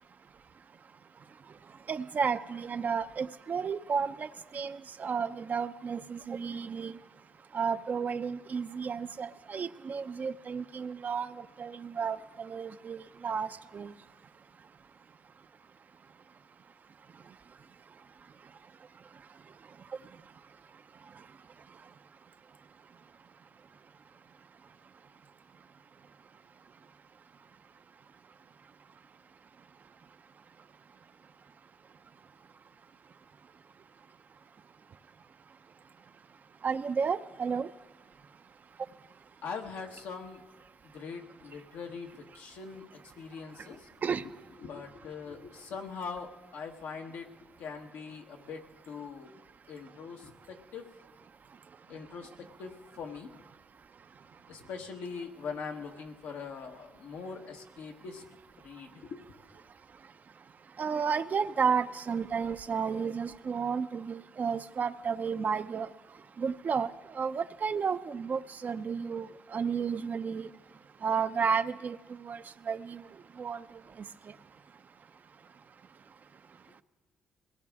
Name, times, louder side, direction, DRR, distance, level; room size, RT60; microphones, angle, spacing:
voice 1, 1.9-4.3 4.5-6.9 7.5-11.3 11.6-13.9 36.6-37.7 44.0-44.2 60.8-65.9 66.4-66.9 67.2-70.5 71.0-72.0 72.2-73.0 73.4-73.6, right 6 dB, 50° right, 11 dB, 0.6 m, -32 dB
voice 2, 39.4-40.4 40.8-43.9 44.6-47.3 47.6-49.3 49.7-50.9 51.9-53.3 54.5-58.2 58.6-59.3 76.7-76.8, left 5 dB, 80° left, 2 dB, 1.4 m, -42 dB
21.5 x 17.0 x 3.6 m, 1.3 s
supercardioid pair, 55°, 4 cm